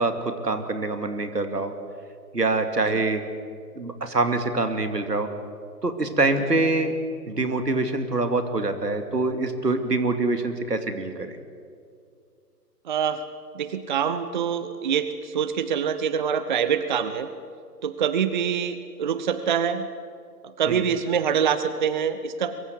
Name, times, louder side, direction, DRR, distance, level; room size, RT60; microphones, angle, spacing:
voice 1, 0.0-1.7 2.3-3.2 3.8-5.3 5.8-6.9 7.3-11.4, right 2 dB, 75° right, 8 dB, 2.6 m, -25 dB
voice 2, 12.8-13.2 13.5-17.3 17.8-19.9 20.4-22.6, right 7 dB, 30° right, 12 dB, 0.7 m, -25 dB
22.5 x 22.5 x 7.9 m, 2.3 s
figure-of-eight pair, 130°, 48 cm